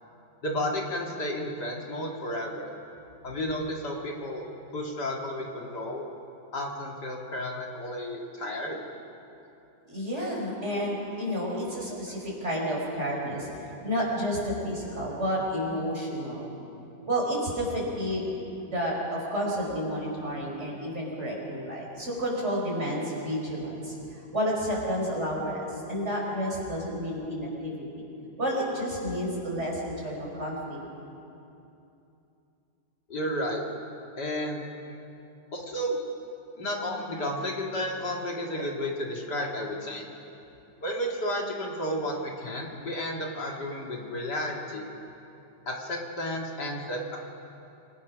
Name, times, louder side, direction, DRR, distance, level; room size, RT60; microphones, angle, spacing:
voice 1, 0.4-2.7 3.2-4.4 4.7-6.0 6.5-8.8 33.1-33.6 34.2-34.6 35.5-36.0 36.6-40.1 40.8-44.8 45.7-47.2, left 1 dB, 65° left, -1 dB, 2.9 m, -32 dB
voice 2, 9.9-16.5 17.1-18.3 18.6-28.1 28.4-30.8, equal, 40° right, -3 dB, 5.9 m, -31 dB
27.0 x 20.0 x 6.3 m, 2.8 s
omnidirectional pair, 1.9 m